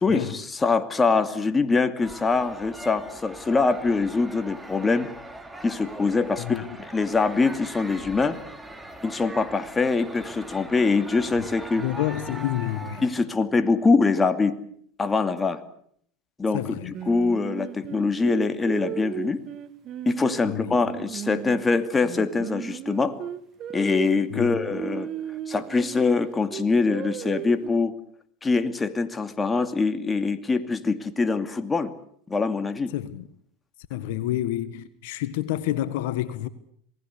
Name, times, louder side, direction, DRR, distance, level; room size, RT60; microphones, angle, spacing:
voice 1, 0.0-5.1 5.6-6.6 6.9-8.4 9.0-11.9 13.0-14.6 15.0-15.6 16.4-19.4 20.1-23.2 23.7-25.1 25.5-28.0 28.4-31.9 32.3-32.9, left 4 dB, 20° left, 2.5 m, -24 dB
sound 1, 2.0-13.1, right 2 dB, 10° right, 3.8 m, -41 dB
voice 2, 6.4-6.8 11.8-13.0 16.5-16.9 20.4-20.8 24.3-24.6 32.9-33.3 33.9-36.5, left 13 dB, 70° left, 1.6 m, -29 dB
Singing, 16.9-21.6 22.0-26.0 26.5-27.7, right 11 dB, 45° right, 1.9 m, -36 dB
27.5 x 19.0 x 8.3 m
hypercardioid pair, 95°, 0 cm